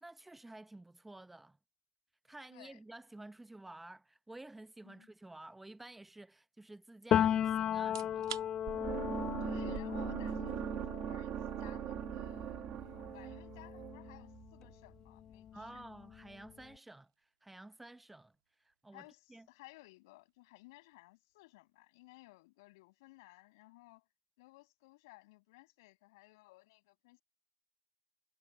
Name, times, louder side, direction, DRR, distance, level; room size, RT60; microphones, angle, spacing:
voice 1, 0.0-1.6 2.2-8.4 15.5-19.0 19.3-19.5, right 2 dB, 5° right, 0.7 m, -52 dB
voice 2, 2.5-2.8 4.8-5.1 9.4-16.0 18.9-24.1 24.4-27.2, left 22 dB, 55° left, 7.2 m, -58 dB
Piano, 7.1-14.7 15.1-16.6, left 10 dB, 25° left, 0.8 m, -36 dB
sound 1, 7.8-22.6, right 11 dB, 75° right, 2.1 m, -58 dB
sound 2, 8.7-14.7, right 12 dB, 35° right, 1.7 m, -41 dB
hypercardioid pair, 115°, 3 cm